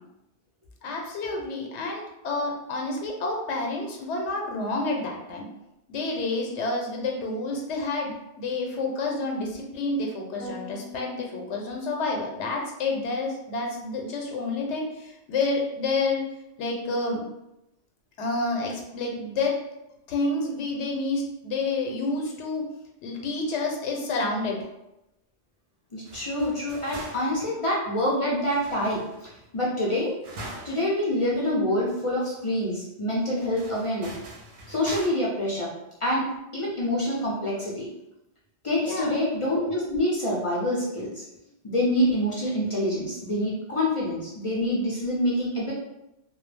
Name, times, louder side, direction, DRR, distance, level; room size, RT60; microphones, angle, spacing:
voice 1, 0.8-5.4 5.9-16.2 16.6-17.2 18.2-19.6 20.1-22.7 23.0-24.6 38.8-39.1, left 3 dB, 85° left, 1 dB, 0.9 m, -29 dB
sound 1, 10.4-12.4, left 2 dB, 15° right, 0.6 m, -42 dB
voice 2, 25.9-29.0 29.5-30.1 30.6-34.1 34.7-35.7 36.0-37.9 38.6-41.2 41.6-45.7, left 1 dB, 40° left, -6 dB, 0.5 m, -26 dB
sound 2, 26.1-27.5 28.4-29.5 30.2-30.9 31.3-31.4 31.9-32.0 33.3-35.1, right 1 dB, 65° right, 0.7 m, -42 dB
2.2 x 2.0 x 3.2 m, 0.89 s
omnidirectional pair, 1.2 m